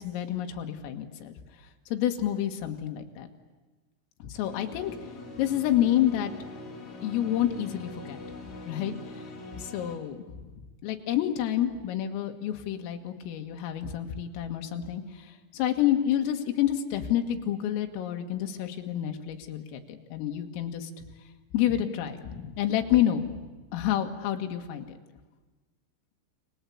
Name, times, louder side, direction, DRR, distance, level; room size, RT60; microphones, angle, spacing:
voice 1, 0.0-1.4 1.9-3.3 4.2-5.0 5.4-6.3 7.0-8.2 8.7-8.9 9.5-20.9 21.5-23.4 23.7-24.8, left 11 dB, 85° left, 5 dB, 4.4 m, -29 dB
sound 1, 4.4-10.0, left 2 dB, 40° left, 4.2 m, -43 dB
29.5 x 22.5 x 8.5 m, 1.2 s
omnidirectional pair, 5.8 m